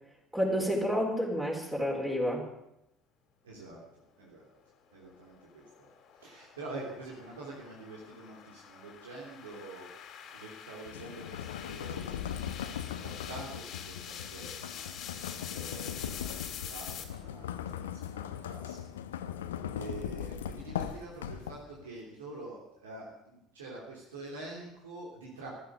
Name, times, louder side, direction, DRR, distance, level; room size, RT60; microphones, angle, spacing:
voice 1, 0.3-2.5, equal, 10° right, -1 dB, 4.3 m, -29 dB
voice 2, 3.4-4.5 4.9-5.9 6.2-9.9 10.3-12.1 13.0-14.9 15.5-18.8 19.8-25.5, right 2 dB, 75° right, -4 dB, 3.2 m, -46 dB
sound 1, 5.0-17.0, left 8 dB, 50° left, 2.4 m, -46 dB
sound 2, 10.8-21.8, left 9 dB, 75° left, 0.8 m, -39 dB
15.0 x 12.5 x 6.6 m, 0.86 s
figure-of-eight pair, 60°, 0 cm